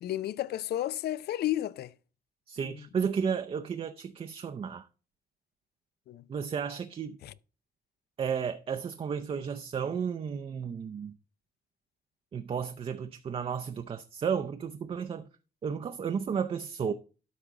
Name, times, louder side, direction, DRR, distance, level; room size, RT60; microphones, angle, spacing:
voice 1, 0.0-1.9 2.6-2.8 6.1-6.3 7.2-7.3, left 13 dB, 90° left, 0.5 m, -32 dB
voice 2, 2.5-4.9 6.3-7.2 8.2-11.1 12.3-15.3 15.6-16.9, right 7 dB, 35° right, 0.5 m, -33 dB
12.5 x 5.0 x 3.6 m
wide cardioid pair, 165°, 16 cm